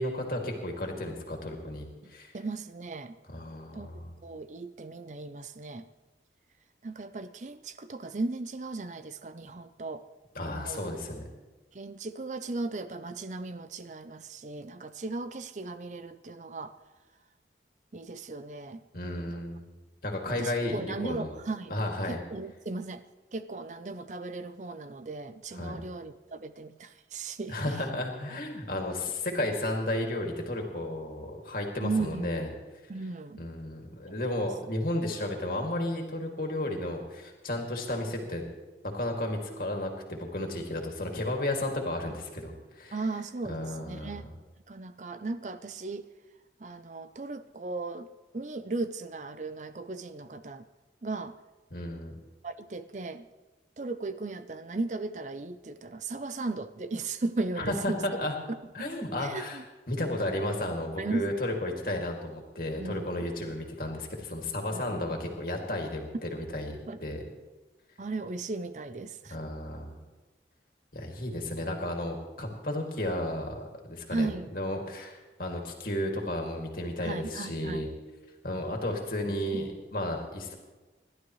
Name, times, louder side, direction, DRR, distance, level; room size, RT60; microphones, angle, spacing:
voice 1, 0.0-2.3 3.3-4.1 10.4-11.2 18.9-19.7 20.0-21.3 21.7-22.2 25.5-25.8 27.5-32.5 33.4-38.5 38.9-43.0 43.5-44.2 51.7-52.2 57.6-58.3 58.7-59.6 59.9-66.8 67.0-67.2 69.3-70.0 70.9-77.9 78.4-80.5, left 1 dB, 55° left, 1 dB, 2.4 m, -33 dB
voice 2, 2.0-3.2 3.7-5.9 6.8-10.0 10.5-11.0 11.7-16.8 17.9-18.8 19.2-19.4 20.3-21.7 22.1-23.0 23.3-27.8 31.8-32.3 32.9-33.4 42.9-44.3 44.7-46.1 46.6-50.7 51.0-51.4 52.4-53.3 53.8-58.0 59.2-59.6 61.0-61.4 62.8-63.1 64.7-65.0 66.9-67.0 68.0-69.4 74.1-74.5 77.0-77.9 79.5-79.6, right 3 dB, 40° right, 12 dB, 0.5 m, -36 dB
28.5 x 12.0 x 3.2 m, 1.2 s
head